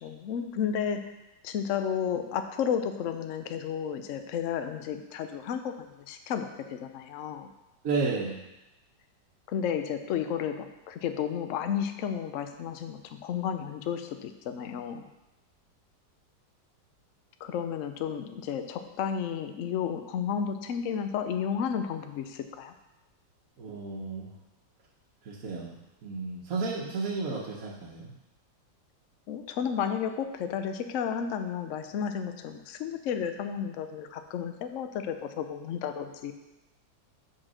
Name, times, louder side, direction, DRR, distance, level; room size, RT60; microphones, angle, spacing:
voice 1, 0.0-1.1 1.4-7.5 9.5-15.0 17.4-22.7 29.3-36.3, left 8 dB, 80° left, 7 dB, 0.7 m, -32 dB
voice 2, 7.8-8.4 23.6-24.3 25.2-28.1, right 4 dB, 55° right, -4 dB, 1.2 m, -33 dB
5.7 x 5.1 x 6.2 m, 0.95 s
omnidirectional pair, 2.0 m